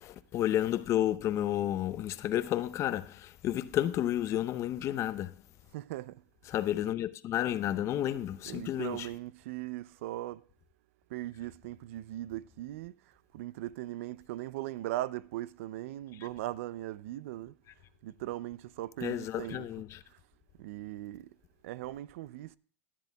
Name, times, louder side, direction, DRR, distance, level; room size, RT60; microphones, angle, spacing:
voice 1, 0.0-5.3 6.5-9.1 19.0-20.0, left 12 dB, 40° left, 0.7 m, -31 dB
voice 2, 5.7-6.2 8.1-8.2 8.4-10.4 11.1-12.9 13.3-17.5 18.0-19.7 20.6-21.3 21.6-22.6, right 15 dB, 75° right, 0.5 m, -39 dB
18.5 x 10.5 x 2.3 m
supercardioid pair, 115°, 7 cm